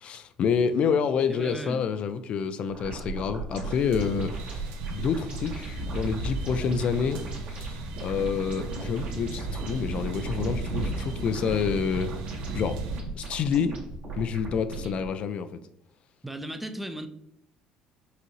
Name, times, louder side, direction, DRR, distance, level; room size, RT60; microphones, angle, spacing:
voice 1, 0.0-7.2 7.5-12.1 12.5-12.8 13.2-13.8 14.1-15.6, left 6 dB, 55° left, 10 dB, 0.3 m, -28 dB
voice 2, 1.3-1.9 16.2-17.1, right 1 dB, 5° right, 8 dB, 0.5 m, -36 dB
sound 1, 2.7-15.1, right 3 dB, 55° right, 1.5 m, -37 dB
sound 2, 3.6-13.0, right 3 dB, 80° right, 0.7 m, -36 dB
5.6 x 2.6 x 3.0 m, 0.75 s
supercardioid pair, 85°, 2 cm